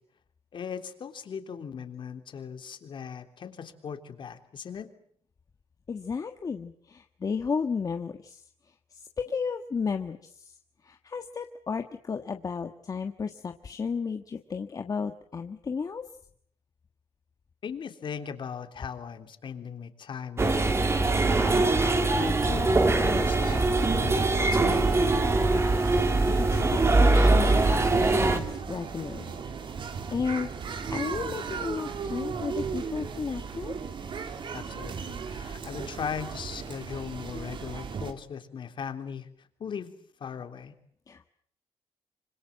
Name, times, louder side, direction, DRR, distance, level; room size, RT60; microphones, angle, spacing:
voice 1, 0.5-4.9 17.6-20.7 21.1-24.9 34.5-39.3 39.6-39.9 40.2-40.7, left 7 dB, 50° left, 8 dB, 3.4 m, -38 dB
voice 2, 5.9-8.4 8.9-10.6 10.8-16.0 26.3-29.2 30.1-33.7 41.1-41.3, left 5 dB, 35° left, 6 dB, 1.5 m, -33 dB
sound 1, 20.4-28.4, right 2 dB, 25° right, 2.8 m, -22 dB
sound 2, 23.1-38.1, right 6 dB, 50° right, 3.2 m, -36 dB
26.0 x 26.0 x 7.6 m, 0.64 s
cardioid pair, 130°, 11 cm